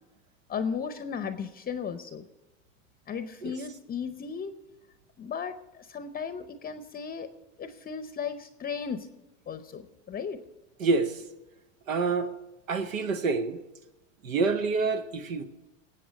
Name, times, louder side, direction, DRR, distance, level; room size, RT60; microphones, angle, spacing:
voice 1, 0.5-2.3 3.1-4.5 5.2-7.3 7.6-9.1 9.5-10.4, left 6 dB, 25° left, 0.7 m, -35 dB
voice 2, 10.8-11.1 11.9-12.3 12.7-13.6 14.2-15.4, right 4 dB, 90° right, 1.1 m, -27 dB
19.0 x 7.8 x 5.1 m
hypercardioid pair, 100°, 39 cm